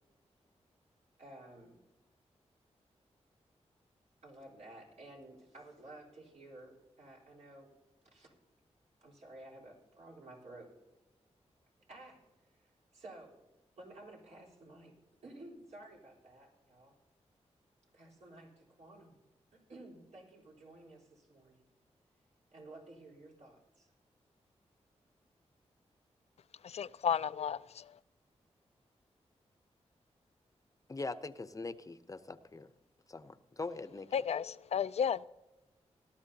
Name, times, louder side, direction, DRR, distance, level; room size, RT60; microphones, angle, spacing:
voice 1, 1.2-1.8 4.2-7.7 8.1-8.4 9.0-10.7 11.9-13.4 13.8-15.0 15.2-17.0 17.9-19.2 19.5-21.6 22.5-23.9, right 2 dB, 75° right, 4.0 m, -54 dB
voice 2, 26.6-27.9 34.1-35.2, left 7 dB, 65° left, 0.4 m, -33 dB
voice 3, 30.9-32.7 33.1-34.1, left 3 dB, 30° left, 0.7 m, -42 dB
18.5 x 12.5 x 2.8 m
cardioid pair, 75°, 12 cm